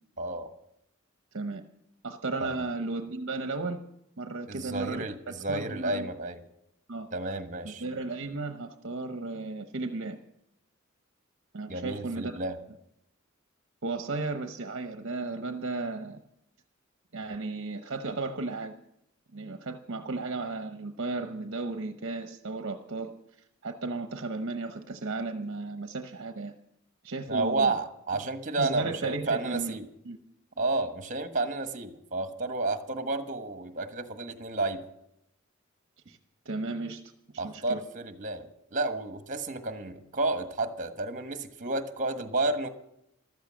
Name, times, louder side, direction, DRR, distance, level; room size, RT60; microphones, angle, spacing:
voice 1, 0.2-0.5 2.4-2.5 4.5-6.4 7.1-7.8 11.7-12.6 27.3-29.9 30.6-34.8 37.4-42.7, right 2 dB, 40° right, 8 dB, 1.3 m, -31 dB
voice 2, 2.0-3.8 4.2-6.1 6.9-7.1 7.6-10.2 11.5-12.4 13.8-16.2 17.1-18.8 19.3-23.1 23.6-26.6 27.0-27.7 28.6-29.8 30.0-30.2 36.1-36.2 36.4-37.0 37.4-37.8, right 3 dB, 60° right, 7 dB, 0.9 m, -34 dB
14.5 x 13.0 x 6.4 m, 0.81 s
head